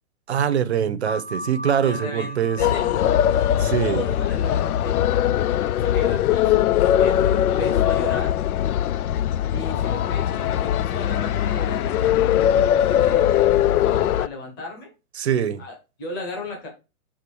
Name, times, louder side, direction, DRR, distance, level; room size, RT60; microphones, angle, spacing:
voice 1, 0.3-2.6 3.6-4.0 15.2-15.6, right 8 dB, 50° right, 0.7 m, -23 dB
sound 1, 1.1-6.2, left 1 dB, 40° left, 1.4 m, -38 dB
voice 2, 1.8-3.3 3.8-5.0 5.8-6.7 7.0-8.4 9.5-14.9 15.6-16.7, left 2 dB, 15° left, 1.1 m, -34 dB
sound 2, 2.6-14.3, left 11 dB, 80° left, 0.5 m, -21 dB
6.9 x 3.8 x 4.6 m
hypercardioid pair, 175°, 43 cm